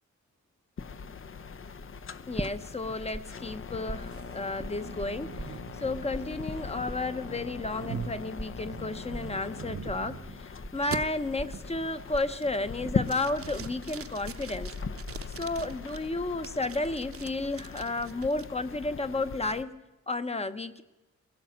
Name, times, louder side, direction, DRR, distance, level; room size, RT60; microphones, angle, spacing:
sound 1, 0.8-19.6, left 5 dB, 45° left, 0.8 m, -40 dB
voice 1, 2.3-5.3 5.8-14.7 15.3-19.8 20.1-20.8, left 2 dB, 20° left, 11 dB, 1.0 m, -32 dB
sound 2, 2.4-3.2 3.5-5.8 6.1-13.7 14.0-14.5, right 1 dB, 5° right, 0.7 m, -40 dB
sound 3, 4.1-10.4 10.9-11.0 11.5-11.9 12.3-12.7 13.1-16.0 16.4-18.5, right 7 dB, 50° right, 0.9 m, -43 dB
21.5 x 16.5 x 8.0 m, 1.0 s
wide cardioid pair, 140°, 29 cm